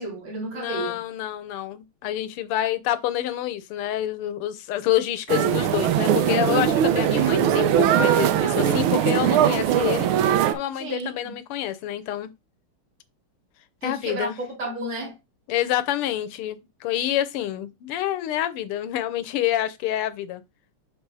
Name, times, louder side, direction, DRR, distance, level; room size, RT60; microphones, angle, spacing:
voice 1, 0.0-1.0 10.7-11.4 13.8-15.2, right 1 dB, 30° right, 3.0 m, -32 dB
voice 2, 0.5-10.1 10.5-12.3 13.8-14.3 15.5-20.4, left 12 dB, 80° left, 1.7 m, -27 dB
sound 1, 5.3-10.5, right 10 dB, 75° right, 1.5 m, -20 dB
6.8 x 3.4 x 4.8 m
omnidirectional pair, 2.4 m